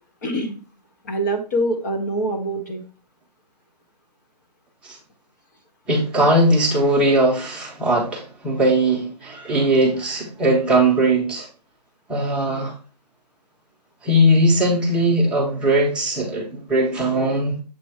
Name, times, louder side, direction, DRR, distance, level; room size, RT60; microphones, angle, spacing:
voice 1, 0.2-0.6 1.0-2.8, right 1 dB, 25° left, 0.7 m, -24 dB
voice 2, 5.9-11.5 12.1-12.7 14.0-17.5, right 1 dB, 5° right, 0.9 m, -19 dB
7.4 x 3.0 x 4.4 m
figure-of-eight pair, 140°, 21 cm